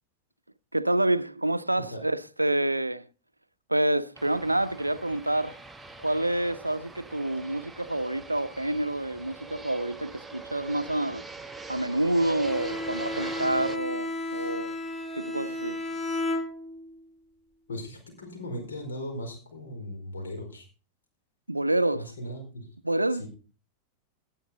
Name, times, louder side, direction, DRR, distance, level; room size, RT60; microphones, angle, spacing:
voice 1, 0.7-3.1 3.7-5.6 6.0-11.3 11.7-14.8 15.1-15.8 21.5-22.1 22.8-23.3, right 1 dB, 85° right, 0.5 m, -28 dB
Fixed-wing aircraft airplane, 4.1-13.8, right 3 dB, 10° right, 1.0 m, -43 dB
Bowed string instrument, 12.4-17.0, left 2 dB, 10° left, 2.5 m, -33 dB
voice 2, 17.7-20.7 21.9-22.7 23.2-23.3, left 1 dB, 70° left, 4.8 m, -38 dB
18.0 x 8.6 x 3.9 m
figure-of-eight pair, 90°, 0 cm